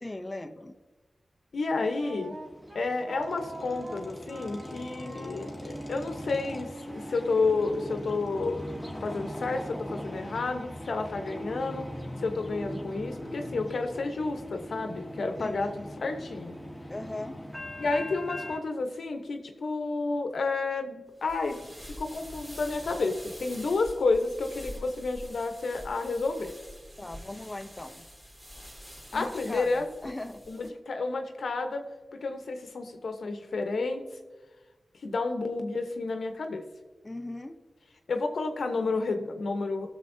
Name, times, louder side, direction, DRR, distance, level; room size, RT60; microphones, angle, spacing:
voice 1, 0.0-0.8 15.4-15.9 16.9-17.4 27.0-28.1 29.1-30.4 37.0-37.6, left 2 dB, 25° left, 5 dB, 0.6 m, -39 dB
voice 2, 1.5-2.3 2.7-8.6 9.0-11.9 12.2-15.7 16.0-16.6 17.8-21.7 22.0-26.5 29.1-29.8 30.5-31.8 32.2-34.0 35.0-36.6 38.1-39.9, left 3 dB, 85° left, 5 dB, 0.9 m, -30 dB
sound 1, 1.9-18.6, equal, 5° left, 1.4 m, -40 dB
Wind instrument woodwind instrument, 1.9-8.9, right 1 dB, 50° right, 2.9 m, -44 dB
sound 2, 21.2-30.7, equal, 15° right, 2.9 m, -46 dB
17.0 x 6.5 x 2.7 m, 1.2 s
cardioid pair, 55°, 0 cm